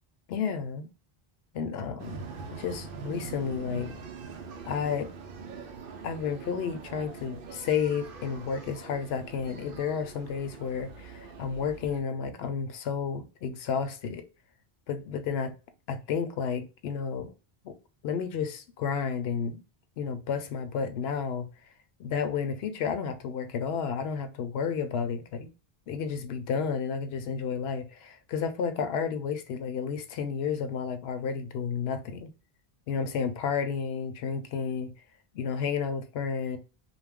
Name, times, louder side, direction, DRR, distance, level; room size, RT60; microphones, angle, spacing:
voice 1, 0.3-0.9 1.5-2.2 2.5-3.9 4.6-5.1 6.0-14.2 14.9-15.6 15.9-17.3 17.6-17.7 18.0-19.6 20.0-21.5 22.0-25.5 25.9-32.3 32.9-34.9 35.3-36.6, left 6 dB, 80° left, 0.8 m, -31 dB
sound 1, 2.0-12.0, right 5 dB, 65° right, 0.7 m, -43 dB
2.4 x 2.1 x 3.3 m
omnidirectional pair, 1.0 m